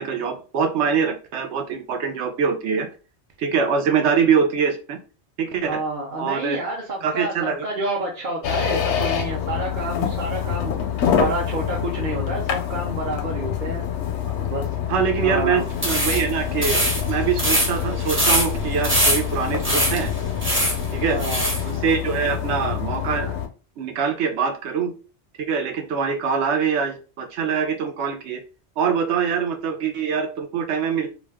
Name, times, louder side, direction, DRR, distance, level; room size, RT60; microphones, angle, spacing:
voice 1, 0.0-2.9 3.4-5.0 5.4-5.8 6.2-6.6 7.0-7.6 14.3-14.5 14.9-20.1 20.9-21.2 21.6-23.4 23.8-24.9 25.4-28.4 28.8-31.1, right 6 dB, 90° right, 6 dB, 0.9 m, -24 dB
voice 2, 5.7-10.7 11.1-13.8 14.5-14.7 15.2-15.7 21.1-21.5, right 2 dB, 50° right, -2 dB, 0.8 m, -29 dB
sound 1, 8.4-23.5, left 9 dB, 85° left, 0.9 m, -26 dB
sound 2, 15.7-21.6, right 1 dB, 15° right, 0.6 m, -23 dB
2.5 x 2.2 x 3.4 m, 0.35 s
omnidirectional pair, 1.1 m